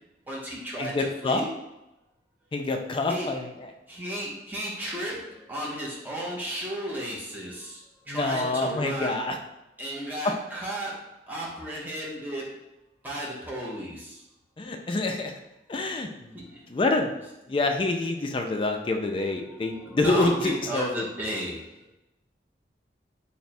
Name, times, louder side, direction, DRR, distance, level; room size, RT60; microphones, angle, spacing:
voice 1, 0.3-1.5 3.1-3.3 3.9-9.2 9.8-12.5 13.0-14.2 16.3-16.6 19.5-21.7, right 1 dB, 10° right, -4 dB, 0.6 m, -34 dB
voice 2, 0.8-1.4 2.5-3.7 8.1-9.4 10.2-10.4 14.6-15.3 15.7-16.4 16.7-17.1 17.5-21.0, left 2 dB, 30° left, 4 dB, 0.3 m, -27 dB
3.4 x 2.1 x 4.1 m, 0.93 s
head